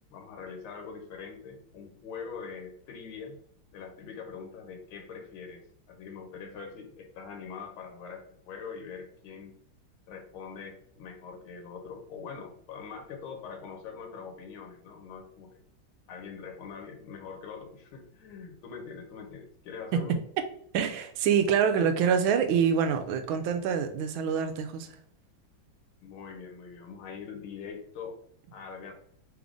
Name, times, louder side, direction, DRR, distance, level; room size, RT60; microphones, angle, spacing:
voice 1, 0.1-3.4 3.7-5.6 5.9-9.6 10.1-15.6 16.1-20.1 26.0-28.2 28.5-28.9, left 6 dB, 75° left, 1.6 m, -43 dB
voice 2, 20.7-24.9, right 7 dB, 80° right, 1.4 m, -26 dB
3.8 x 3.6 x 3.7 m
omnidirectional pair, 2.3 m